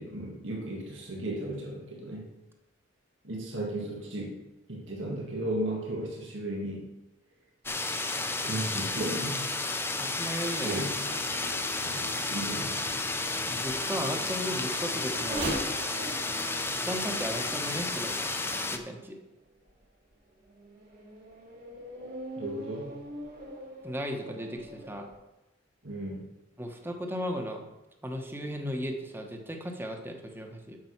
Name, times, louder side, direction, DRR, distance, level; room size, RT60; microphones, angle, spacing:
voice 1, 0.0-2.3 3.2-4.4 4.7-6.9 8.4-9.5 10.6-11.0 11.8-12.8 22.4-22.9 25.8-26.3, right 1 dB, 90° right, -1 dB, 1.7 m, -35 dB
sound 1, 7.7-18.8, left 3 dB, 10° left, 0.6 m, -32 dB
voice 2, 10.0-10.8 13.4-15.5 16.7-18.2 18.7-19.2 23.8-25.1 26.6-27.6 28.0-30.8, equal, 10° right, 4 dB, 1.0 m, -36 dB
sound 2, 10.8-18.7, left 1 dB, 75° right, 1.8 m, -46 dB
Race car auto racing / Accelerating revving vroom, 11.5-19.1 19.7-19.8 20.4-25.2, right 1 dB, 55° right, 2.8 m, -42 dB
7.6 x 6.7 x 5.8 m, 0.99 s
head